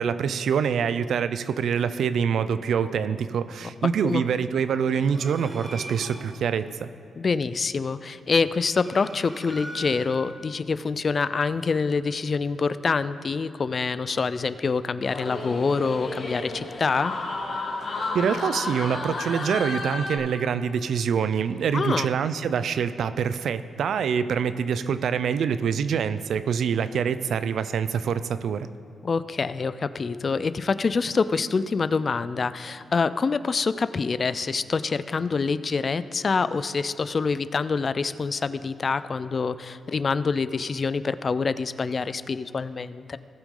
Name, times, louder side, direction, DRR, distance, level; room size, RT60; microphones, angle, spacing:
voice 1, 0.0-6.9 18.1-28.7, right 7 dB, 75° right, 13 dB, 0.4 m, -25 dB
sound 1, 4.8-6.4 8.3-10.4, right 1 dB, 20° right, 1.2 m, -40 dB
voice 2, 7.2-17.1 21.7-22.1 29.0-43.2, left 4 dB, 40° left, 15 dB, 0.3 m, -26 dB
sound 2, 15.0-20.2, left 2 dB, 55° left, 2.1 m, -32 dB
18.0 x 6.0 x 3.7 m, 2.5 s
cardioid pair, 115°, 0 cm